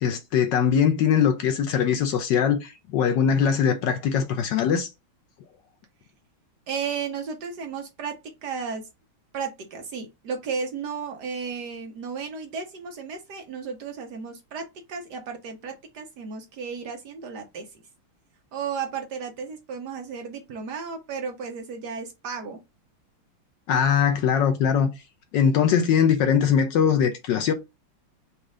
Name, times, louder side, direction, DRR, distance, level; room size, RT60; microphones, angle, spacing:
voice 1, 0.0-4.9 23.7-24.9 25.3-27.5, left 7 dB, 75° left, 1.1 m, -21 dB
voice 2, 6.7-8.1 8.4-8.8 9.3-17.7 18.5-22.6, right 6 dB, 65° right, 1.1 m, -34 dB
4.2 x 2.4 x 4.8 m
omnidirectional pair, 2.3 m